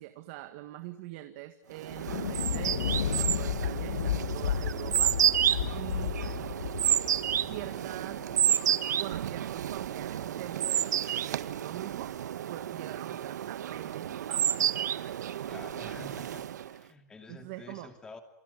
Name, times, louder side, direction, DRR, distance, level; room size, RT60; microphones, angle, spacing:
voice 1, 0.0-2.8 3.2-5.2 5.7-6.2 7.4-8.3 9.0-12.2 12.5-14.7 17.3-17.9, right 16 dB, 35° right, 8 dB, 1.9 m, -43 dB
sound 1, 1.8-16.8, right 10 dB, 75° right, 1.6 m, -30 dB
Thunder, 1.9-8.6, left 9 dB, 80° left, 2.1 m, -33 dB
voice 2, 2.4-2.8 6.0-6.5 15.5-18.2, left 3 dB, 10° left, 6 dB, 2.7 m, -49 dB
28.5 x 24.5 x 8.2 m, 0.63 s
supercardioid pair, 170°, 9 cm